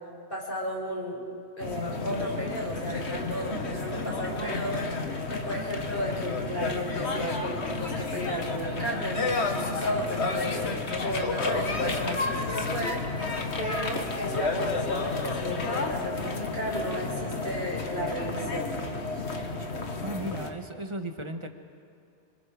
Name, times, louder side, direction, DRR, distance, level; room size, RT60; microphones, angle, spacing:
voice 1, 0.3-1.3 1.6-13.0 13.6-18.8, equal, 55° left, -3 dB, 5.5 m, -34 dB
sound 1, 1.6-20.5, left 3 dB, 85° left, 1.8 m, -31 dB
voice 2, 19.9-21.5, right 1 dB, 30° right, 5 dB, 1.4 m, -35 dB
26.0 x 26.0 x 5.0 m, 2.5 s
omnidirectional pair, 1.1 m